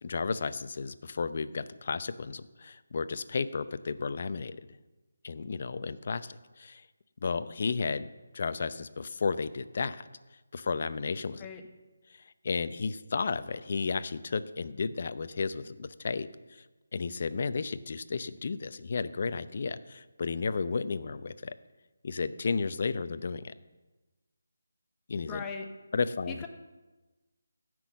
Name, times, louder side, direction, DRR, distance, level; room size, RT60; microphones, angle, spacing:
voice 1, 0.0-4.6 5.2-6.8 7.2-8.1 8.3-10.1 10.5-11.5 12.4-16.6 16.9-21.5 22.0-23.5 25.1-25.4 25.9-26.4, left 4 dB, 45° left, 13 dB, 0.6 m, -33 dB
voice 2, 25.3-25.7 26.3-26.5, left 5 dB, 10° left, 3 dB, 1.1 m, -38 dB
15.5 x 6.2 x 7.0 m, 1.2 s
figure-of-eight pair, 165°, 0 cm